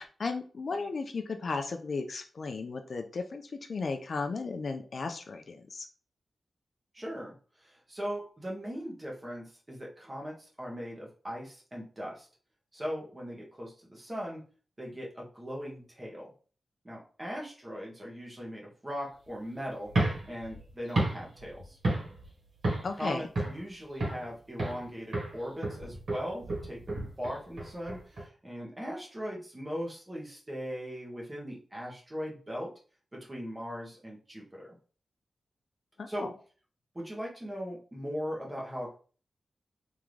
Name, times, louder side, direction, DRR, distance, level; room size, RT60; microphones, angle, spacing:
voice 1, 0.0-5.9 22.8-23.2 36.0-36.3, left 4 dB, 50° left, 6 dB, 0.5 m, -35 dB
voice 2, 6.9-12.3 12.7-14.4 14.8-16.3 16.8-19.9 20.3-21.8 22.9-32.7 33.1-34.8 36.1-36.3 36.9-38.9, equal, 20° right, -3 dB, 1.4 m, -39 dB
sound 1, 19.8-22.3 22.6-23.0 23.3-24.3 24.6-24.9 25.1-28.2, right 2 dB, 55° right, 2.1 m, -32 dB
3.7 x 3.5 x 3.2 m, 0.40 s
wide cardioid pair, 130°, 0 cm